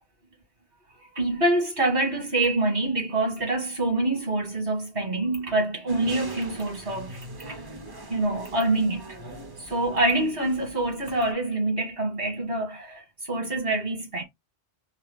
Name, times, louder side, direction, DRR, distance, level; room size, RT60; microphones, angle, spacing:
voice 1, 1.0-7.6 8.1-9.2 9.6-14.2, right 2 dB, 55° right, 2.1 m, -26 dB
sound 1, 5.9-11.3, right 2 dB, 25° right, 0.6 m, -42 dB
4.1 x 3.4 x 3.5 m
omnidirectional pair, 1.1 m